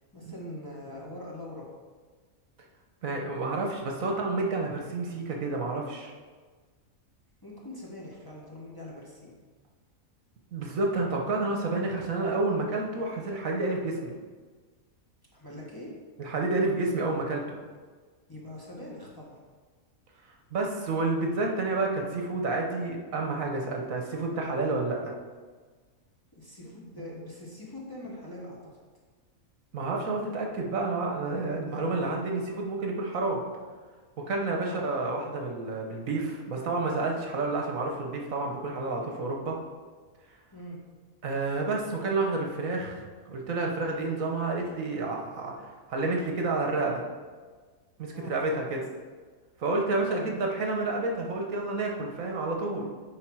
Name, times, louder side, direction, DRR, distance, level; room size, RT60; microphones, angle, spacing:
voice 1, 0.0-1.7 7.4-9.3 15.3-16.0 18.3-19.4 26.4-28.8 34.6-34.8 40.5-40.8 48.1-48.6 50.1-50.4, left 1 dB, 15° left, -5 dB, 1.2 m, -43 dB
voice 2, 3.0-6.1 10.5-14.1 16.2-17.6 20.5-25.1 29.7-33.4 34.2-39.6 41.2-47.0 48.0-48.8 49.6-52.9, right 3 dB, 70° right, 1 dB, 1.4 m, -30 dB
9.5 x 3.6 x 4.7 m, 1.4 s
omnidirectional pair, 1.5 m